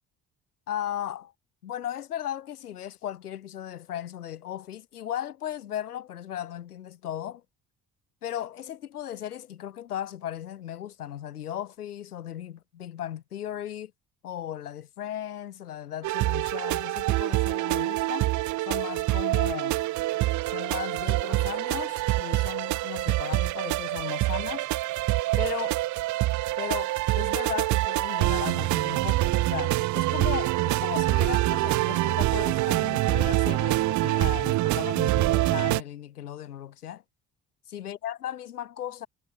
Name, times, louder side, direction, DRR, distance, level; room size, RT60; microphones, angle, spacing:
voice 1, 0.7-1.3 1.6-7.4 8.2-13.9 14.2-18.3 18.6-19.8 20.5-24.7 25.4-25.8 26.6-37.0 37.7-39.1, left 11 dB, 90° left, 1.6 m, -36 dB
sound 1, 16.0-35.8, right 17 dB, 45° right, 0.4 m, -26 dB
hypercardioid pair, 45°, 44 cm